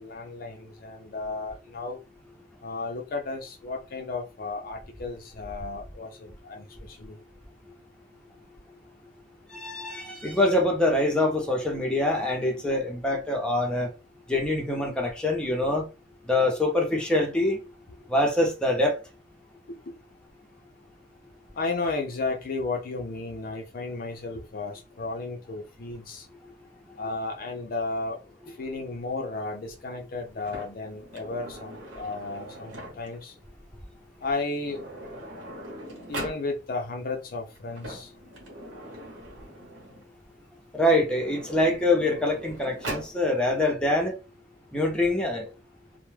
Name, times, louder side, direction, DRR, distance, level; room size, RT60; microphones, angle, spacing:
voice 1, 0.0-2.0 2.6-7.2 19.7-19.8 21.6-26.3 27.0-28.2 28.5-33.3 34.2-34.8 36.1-38.1, left 3 dB, 50° left, 0.5 m, -33 dB
voice 2, 9.5-13.9 14.3-15.8 16.3-17.6 18.1-19.0 40.7-44.1 44.7-45.5, left 1 dB, 5° left, 0.6 m, -24 dB
Sliding door, 30.4-33.2 34.2-34.3 34.6-36.4 37.5-40.1 40.9-43.1, right 1 dB, 90° right, 0.9 m, -41 dB
2.2 x 2.1 x 3.1 m
head